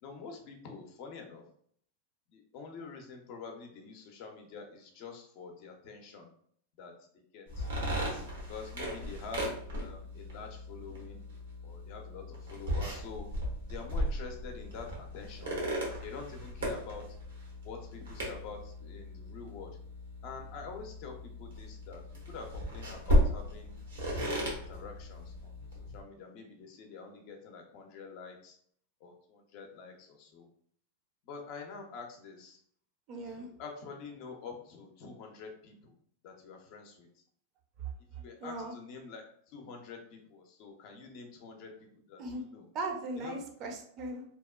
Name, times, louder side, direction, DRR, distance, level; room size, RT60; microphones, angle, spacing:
voice 1, 0.0-1.4 2.3-6.3 6.8-7.7 8.5-9.5 9.8-11.2 11.6-13.3 13.7-15.6 16.0-17.1 17.6-19.8 20.2-23.8 24.2-25.6 25.9-28.6 29.0-30.5 31.2-32.6 33.2-35.9 36.2-37.2 38.2-42.6 43.2-43.4, left 5 dB, 55° left, 3 dB, 0.5 m, -47 dB
sound 1, 7.5-26.0, equal, 90° right, 1.0 m, -36 dB
voice 2, 33.1-33.5 37.8-37.9 38.4-38.7 42.2-42.4 42.7-44.2, right 2 dB, 40° right, 3 dB, 0.5 m, -38 dB
2.8 x 2.1 x 2.3 m, 0.62 s
hypercardioid pair, 125°, 0 cm